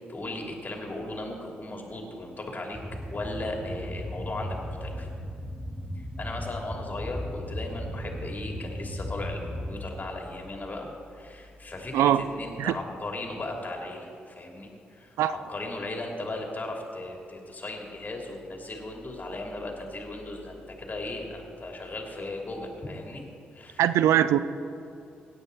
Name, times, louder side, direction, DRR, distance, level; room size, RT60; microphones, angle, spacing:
voice 1, 0.1-2.8 3.1-5.1 5.9-23.2 23.5-23.8, left 2 dB, 35° left, 1 dB, 2.9 m, -37 dB
sound 1, 2.7-9.8, equal, 15° left, 3.4 m, -36 dB
voice 2, 11.9-12.2 12.6-12.7 15.2-15.4 23.8-24.4, right 11 dB, 70° right, 14 dB, 0.4 m, -21 dB
17.0 x 9.7 x 4.1 m, 2.5 s
hypercardioid pair, 40°, 5 cm